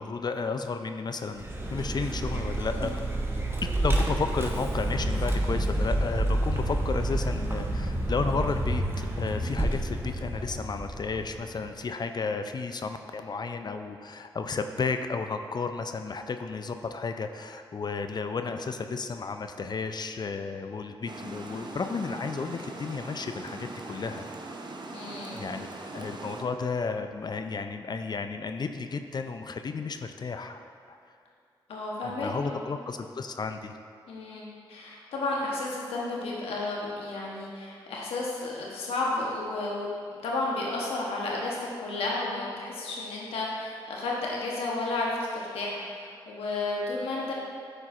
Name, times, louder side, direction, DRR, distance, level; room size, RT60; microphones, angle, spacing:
voice 1, 0.0-2.9 3.6-24.3 25.3-25.7 25.9-30.6 30.9-31.0 32.0-33.7, left 4 dB, 45° left, 7 dB, 0.4 m, -33 dB
Vehicle, 1.3-11.7, right 1 dB, 25° right, 1.0 m, -29 dB
Water, 21.1-26.4, right 3 dB, 50° right, 0.7 m, -41 dB
voice 2, 24.9-25.4 31.7-32.6 34.1-39.9 40.2-47.3, left 2 dB, 85° left, -3 dB, 1.0 m, -32 dB
10.5 x 4.5 x 2.5 m, 2.4 s
supercardioid pair, 45°, 10 cm